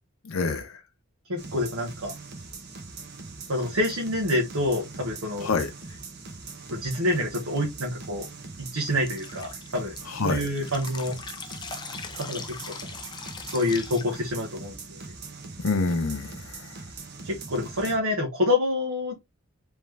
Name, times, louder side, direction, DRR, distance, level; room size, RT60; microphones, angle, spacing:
voice 1, 0.2-0.8 5.4-5.7 10.1-10.5 15.6-16.8, left 4 dB, 75° left, 0.6 m, -27 dB
voice 2, 1.3-2.1 3.5-5.5 6.7-8.3 8.6-9.9 10.2-11.2 12.1-12.7 13.5-15.0 17.2-19.2, left 1 dB, 85° right, 1.1 m, -27 dB
sound 1, 1.4-18.0, right 4 dB, 50° right, 0.8 m, -42 dB
Drip, 9.1-14.7, left 5 dB, 20° left, 0.5 m, -41 dB
3.6 x 3.1 x 3.2 m
head